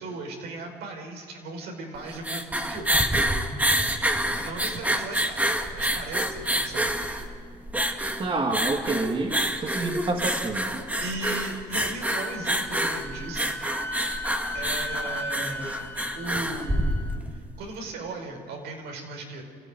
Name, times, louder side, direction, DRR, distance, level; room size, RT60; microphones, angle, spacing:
voice 1, 0.0-3.1 4.4-6.9 11.0-13.6 14.5-15.8 16.1-17.0 17.3-19.4, right 3 dB, 85° right, 2 dB, 5.1 m, -37 dB
sound 1, 2.0-17.4, right 1 dB, 10° right, 2.0 m, -27 dB
voice 2, 8.2-10.8, right 3 dB, 30° right, 3 dB, 2.2 m, -28 dB
Wind instrument woodwind instrument, 12.0-17.2, left 2 dB, 10° left, 1.8 m, -36 dB
29.5 x 15.0 x 9.5 m, 2.2 s
cardioid pair, 110°, 17 cm